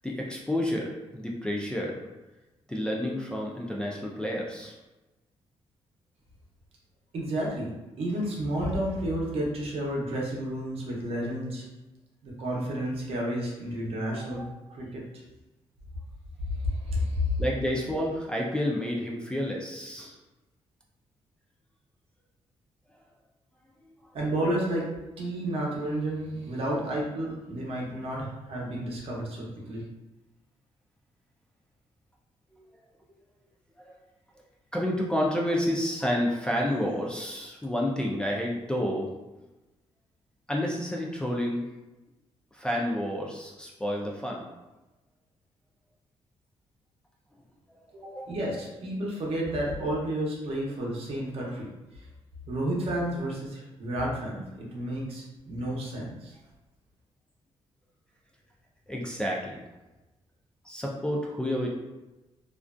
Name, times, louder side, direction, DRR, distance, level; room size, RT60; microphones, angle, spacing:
voice 1, 0.0-1.9 2.7-4.7 14.4-14.5 17.4-20.2 33.8-33.9 34.7-39.1 40.5-41.7 42.5-44.4 48.1-48.3 58.9-59.6 60.7-61.7, left 1 dB, 10° left, -2 dB, 0.3 m, -30 dB
voice 2, 7.1-7.7 8.0-11.6 12.2-14.4 14.7-15.0 16.5-17.4 24.1-24.9 25.2-29.8 47.9-51.7 52.5-56.3, equal, 65° right, -3 dB, 0.7 m, -31 dB
2.4 x 2.3 x 2.2 m, 1.1 s
cardioid pair, 125°, 11 cm